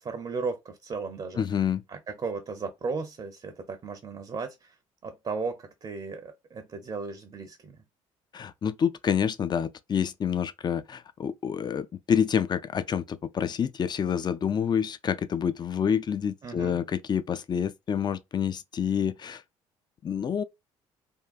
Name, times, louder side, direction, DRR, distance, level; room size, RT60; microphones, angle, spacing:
voice 1, 0.0-1.4 1.9-4.8 5.0-7.8 16.4-16.8, right 4 dB, 35° right, 0.6 m, -35 dB
voice 2, 1.4-1.8 8.3-19.4 20.0-20.4, left 8 dB, 30° left, 0.4 m, -28 dB
3.5 x 2.2 x 2.3 m
hypercardioid pair, 55°, 15 cm